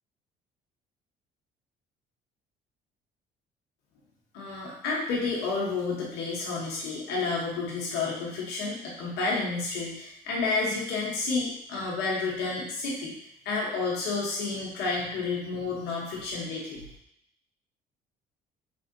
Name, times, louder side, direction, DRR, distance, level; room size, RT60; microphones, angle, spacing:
voice 1, 4.3-13.2 13.4-16.8, left 3 dB, 85° left, -4 dB, 0.8 m, -30 dB
3.4 x 2.6 x 2.6 m, 0.76 s
cardioid pair, 110°, 17 cm